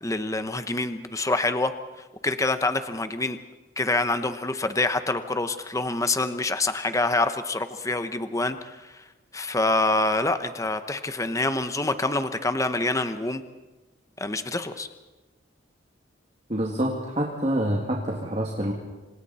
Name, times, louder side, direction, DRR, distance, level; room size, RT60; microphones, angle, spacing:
voice 1, 0.0-1.7 2.2-3.4 3.8-8.9 9.3-13.4 14.2-14.9, left 2 dB, 15° left, 9 dB, 1.0 m, -26 dB
voice 2, 16.5-18.7, right 1 dB, 35° right, -1 dB, 2.3 m, -26 dB
27.0 x 26.5 x 4.3 m, 1.2 s
head